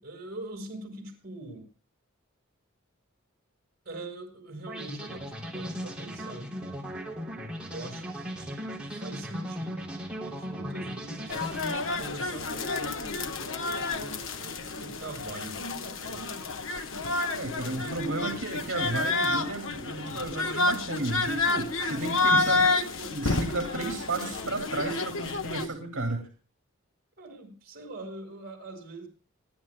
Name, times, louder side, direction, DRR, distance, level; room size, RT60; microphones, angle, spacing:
voice 1, 0.0-1.6 3.8-6.5 7.7-11.5 11.9-16.3 17.7-18.5 20.0-20.2 22.5-23.8 27.2-29.1, right 2 dB, 45° right, 3 dB, 5.7 m, -43 dB
sound 1, 4.7-12.3, equal, 5° right, 3.1 m, -38 dB
sound 2, 11.3-25.7, left 3 dB, 65° left, 1.3 m, -30 dB
voice 2, 17.3-22.6 23.1-26.3, right 2 dB, 70° right, 4 dB, 2.5 m, -33 dB
27.5 x 11.0 x 2.2 m, 0.36 s
head